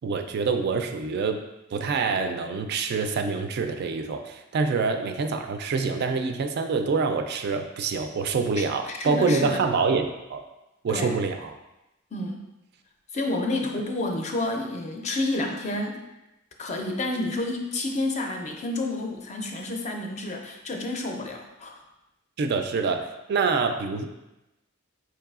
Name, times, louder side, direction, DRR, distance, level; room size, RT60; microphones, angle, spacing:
voice 1, 0.0-1.4 1.7-10.4 10.8-11.6 22.4-24.0, right 4 dB, 55° right, 6 dB, 0.3 m, -26 dB
voice 2, 8.6-9.6 10.9-11.1 12.1-12.5 13.1-16.1 16.6-21.8, left 2 dB, 35° left, 2 dB, 0.5 m, -30 dB
4.7 x 3.2 x 2.4 m, 0.95 s
head